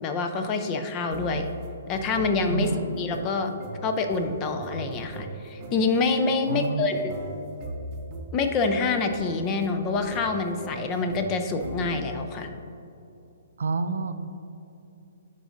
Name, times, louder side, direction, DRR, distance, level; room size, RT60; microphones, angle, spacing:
voice 1, 0.0-1.5 1.9-2.7 3.0-3.5 3.8-7.1 8.3-12.5, left 4 dB, 30° left, 6 dB, 0.5 m, -26 dB
sound 1, 1.1-12.3, right 1 dB, 30° right, 0.7 m, -39 dB
voice 2, 6.5-7.0 13.6-14.1, right 5 dB, 75° right, 9 dB, 0.4 m, -28 dB
10.5 x 3.8 x 2.5 m, 2.7 s
hypercardioid pair, 135°, 0 cm